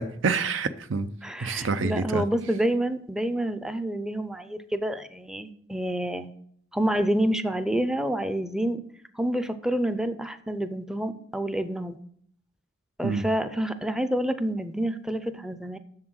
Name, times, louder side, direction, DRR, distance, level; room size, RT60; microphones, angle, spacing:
voice 1, 0.0-1.1 1.4-2.2 13.0-13.2, right 4 dB, 75° right, 0.6 m, -27 dB
voice 2, 1.2-6.3 6.7-8.8 9.2-12.0 13.0-15.8, right 1 dB, 5° right, 0.5 m, -28 dB
7.5 x 6.8 x 6.2 m
head